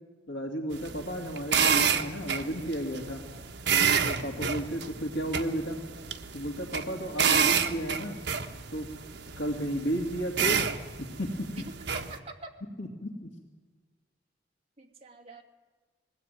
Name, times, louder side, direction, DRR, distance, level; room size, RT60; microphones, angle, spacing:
voice 1, 0.3-3.2 4.0-5.8 6.3-8.2 8.7-8.9 9.4-10.6 11.0-11.6 12.8-13.3, equal, 80° left, 2 dB, 2.4 m, -33 dB
sound 1, 0.7-12.2, right 7 dB, 65° right, 1.3 m, -29 dB
voice 2, 11.9-12.5 14.8-15.4, right 3 dB, 35° right, -1 dB, 2.5 m, -45 dB
21.0 x 16.0 x 9.3 m, 1.4 s
head